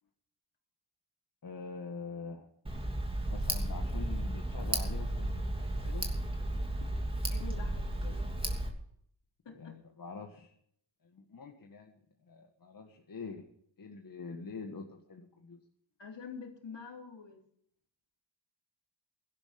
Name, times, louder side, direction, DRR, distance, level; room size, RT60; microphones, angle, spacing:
voice 1, 1.4-2.5 3.3-6.1 9.6-10.5 11.0-13.4 13.8-15.6, left 4 dB, 50° left, 2 dB, 1.8 m, -45 dB
Tick, 2.7-8.7, right 1 dB, 10° right, 2.8 m, -34 dB
voice 2, 7.3-8.2 9.5-9.8 16.0-17.4, left 5 dB, 65° left, 2 dB, 3.5 m, -46 dB
16.5 x 12.0 x 5.2 m, 0.65 s
cardioid pair, 90°, 45 cm